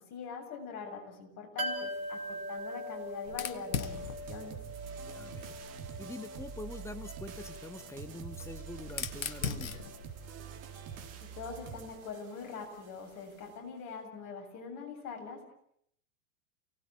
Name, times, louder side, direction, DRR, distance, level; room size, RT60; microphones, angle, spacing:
voice 1, 0.0-4.0 4.3-4.6 11.2-15.4, left 5 dB, 40° left, 3 dB, 7.3 m, -43 dB
sound 1, 1.6-13.2 13.4-13.5, equal, 75° right, 3.8 m, -44 dB
Fire, 3.2-6.0 7.2-11.4, left 7 dB, 75° left, 1.7 m, -41 dB
sound 2, 3.8-12.9, right 8 dB, 35° right, 4.3 m, -46 dB
voice 2, 5.0-5.6 6.0-9.9, left 2 dB, 5° left, 11 dB, 1.6 m, -45 dB
29.5 x 18.5 x 8.6 m, 0.70 s
figure-of-eight pair, 95°, 42 cm